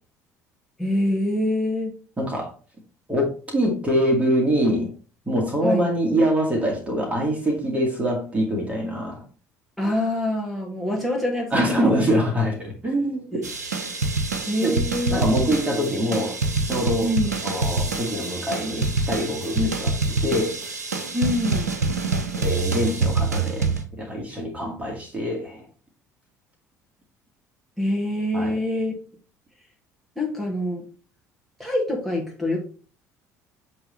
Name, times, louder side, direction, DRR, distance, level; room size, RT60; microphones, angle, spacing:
voice 1, 0.8-1.9 5.6-5.9 9.8-11.9 13.3-13.4 14.5-15.5 17.0-17.3 19.6-19.7 21.1-21.7 24.7-24.8 27.8-28.9 30.2-30.8 31.6-32.6, left 1 dB, ahead, 2.0 m, -25 dB
voice 2, 2.2-2.5 3.1-4.9 5.3-9.2 11.5-13.5 14.6-14.8 15.1-16.4 16.7-17.1 17.4-19.9 20.2-20.6 22.4-23.7 24.0-25.7 28.3-28.5, equal, 15° right, 2.1 m, -24 dB
sound 1, 13.4-23.8, right 3 dB, 80° right, 0.7 m, -26 dB
7.6 x 3.4 x 4.0 m
figure-of-eight pair, 55°, 9 cm